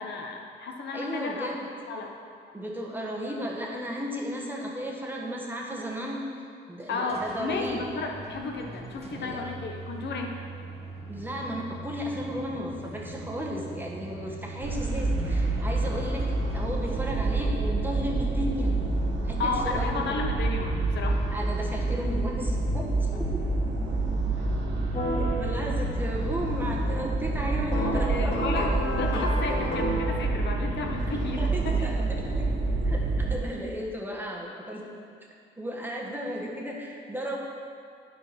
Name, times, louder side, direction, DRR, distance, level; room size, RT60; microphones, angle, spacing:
voice 1, 0.0-1.5 1.9-2.1 6.9-10.4 19.4-21.2 24.3-24.5 27.9-31.9, left 3 dB, 60° left, 1 dB, 1.0 m, -32 dB
voice 2, 0.9-1.7 2.5-7.8 9.1-9.6 11.1-18.7 19.2-20.2 21.3-23.4 25.1-28.4 31.1-32.5 32.8-34.9 35.6-37.4, equal, 10° right, -2 dB, 1.4 m, -34 dB
sound 1, 6.8-18.4, right 2 dB, 30° right, 1.2 m, -42 dB
sound 2, 14.6-33.4, right 2 dB, 65° right, 1.6 m, -28 dB
sound 3, 24.9-25.2 27.7-30.1, equal, 35° left, 2.4 m, -30 dB
8.9 x 5.0 x 5.9 m, 2.3 s
cardioid pair, 90°, 20 cm